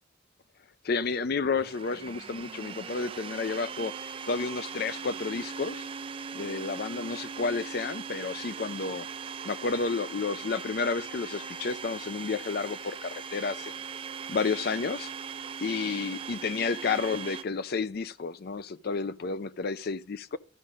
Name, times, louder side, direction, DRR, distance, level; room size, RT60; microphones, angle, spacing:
voice 1, 0.8-4.0 4.3-5.9 6.3-9.1 9.4-13.7 14.3-15.1 15.6-20.4, left 4 dB, 50° left, 0.4 m, -31 dB
Domestic sounds home sounds, 1.6-17.4, right 6 dB, 25° right, 0.3 m, -40 dB
13.0 x 5.0 x 5.4 m
head